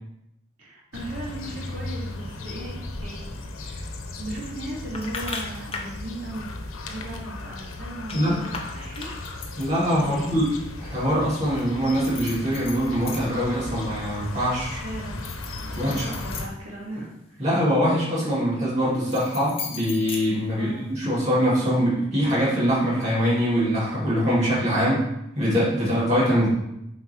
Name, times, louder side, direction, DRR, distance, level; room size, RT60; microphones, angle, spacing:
voice 1, 0.6-3.3 3.6-9.1 10.0-10.4 14.8-15.2 15.6-17.4 20.5-20.9, right 1 dB, 85° right, -5 dB, 2.3 m, -37 dB
sound 1, 0.9-16.5, left 2 dB, 90° left, 1.0 m, -36 dB
sound 2, 4.9-6.0 8.1-9.7 11.9-13.5 13.9-14.4 15.1-17.3 18.9-21.0, left 5 dB, 30° left, 0.8 m, -38 dB
voice 2, 9.6-10.5 10.8-14.8 15.7-16.0 17.4-25.0 25.4-26.5, equal, 30° right, -7 dB, 2.7 m, -23 dB
7.6 x 4.6 x 4.6 m, 0.82 s
head